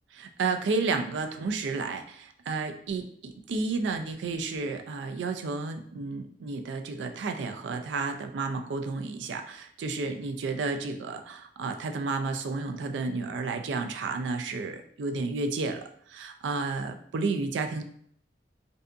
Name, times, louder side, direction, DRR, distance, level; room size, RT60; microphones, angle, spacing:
voice 1, 0.1-15.8 16.1-17.8, right 4 dB, 75° right, 6 dB, 0.3 m, -31 dB
2.6 x 2.5 x 2.3 m, 0.63 s
head